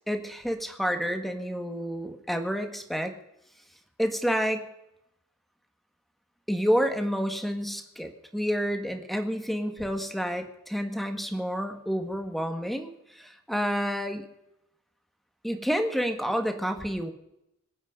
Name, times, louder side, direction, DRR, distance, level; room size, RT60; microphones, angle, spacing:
voice 1, 0.1-3.1 4.0-4.7 6.5-14.3 15.4-17.1, equal, ahead, 6 dB, 1.7 m, -29 dB
26.0 x 8.9 x 5.2 m, 0.83 s
head